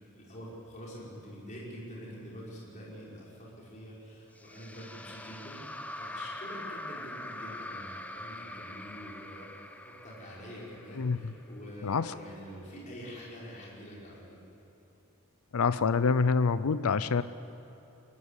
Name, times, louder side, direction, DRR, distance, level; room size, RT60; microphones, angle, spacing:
voice 1, 0.1-9.5 9.8-14.4, equal, 35° left, -5 dB, 5.1 m, -46 dB
sound 1, 4.4-11.6, left 1 dB, 5° left, 0.7 m, -43 dB
voice 2, 15.5-17.2, left 5 dB, 70° left, 14 dB, 0.5 m, -26 dB
23.5 x 14.0 x 9.8 m, 2.7 s
head